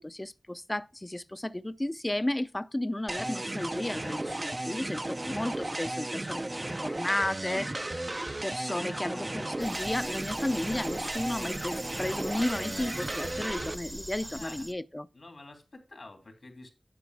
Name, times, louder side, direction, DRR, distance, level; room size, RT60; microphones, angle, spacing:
voice 1, 0.0-7.9 8.4-15.1, left 1 dB, 30° left, 0.5 m, -33 dB
sound 1, 3.1-13.7, right 1 dB, 40° right, 0.5 m, -35 dB
voice 2, 8.6-9.4 12.0-13.1 14.2-14.7 15.1-16.7, left 2 dB, 80° left, 2.9 m, -48 dB
sound 2, 9.6-14.7, right 1 dB, 15° right, 0.8 m, -42 dB
11.0 x 5.2 x 4.7 m
wide cardioid pair, 45°, 0 cm